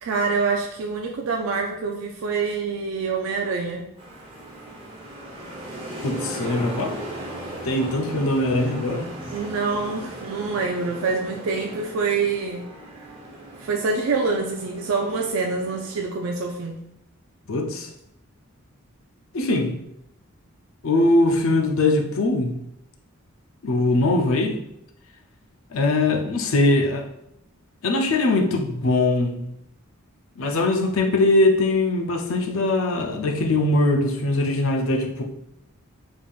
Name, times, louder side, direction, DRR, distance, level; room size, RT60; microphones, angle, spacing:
voice 1, 0.0-3.9 9.3-12.7 13.6-16.8, right 4 dB, 70° right, 2 dB, 0.4 m, -26 dB
sound 1, 4.0-16.0, right 1 dB, 25° right, 0.7 m, -37 dB
voice 2, 6.0-7.0 7.6-9.1 17.5-17.9 19.3-19.8 20.8-22.6 23.6-24.6 25.7-27.1 27.8-29.5 30.4-35.2, left 2 dB, 70° left, 2 dB, 0.5 m, -21 dB
3.7 x 3.4 x 2.4 m, 0.79 s
head